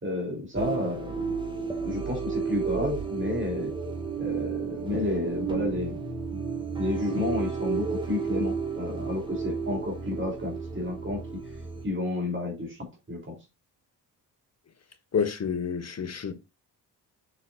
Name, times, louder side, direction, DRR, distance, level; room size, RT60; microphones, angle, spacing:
voice 1, 0.0-1.3 1.8-3.7 4.2-6.0 6.3-6.4 6.8-11.4 11.8-13.4, left 2 dB, 30° right, 3.3 m, -31 dB
sound 1, 0.5-11.8, right 5 dB, 10° right, 2.0 m, -32 dB
voice 2, 15.1-16.3, left 6 dB, 40° left, 1.6 m, -28 dB
7.0 x 6.7 x 2.5 m
cardioid pair, 100°, 39 cm